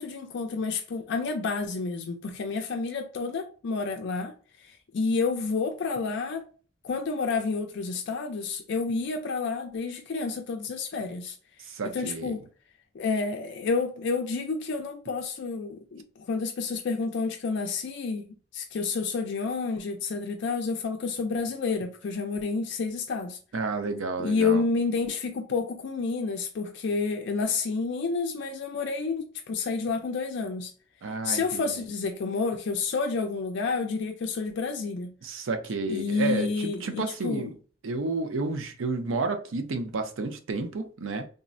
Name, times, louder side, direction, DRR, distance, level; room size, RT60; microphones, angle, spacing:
voice 1, 0.0-4.3 4.7-6.4 6.8-11.3 11.8-12.4 12.9-23.4 24.2-30.7 31.2-35.1 35.8-37.5, left 4 dB, 60° left, 0.4 m, -29 dB
voice 2, 11.7-12.4 23.5-24.6 31.0-31.8 35.2-37.5 37.8-41.3, right 3 dB, 85° right, 0.5 m, -31 dB
3.6 x 2.0 x 2.4 m
head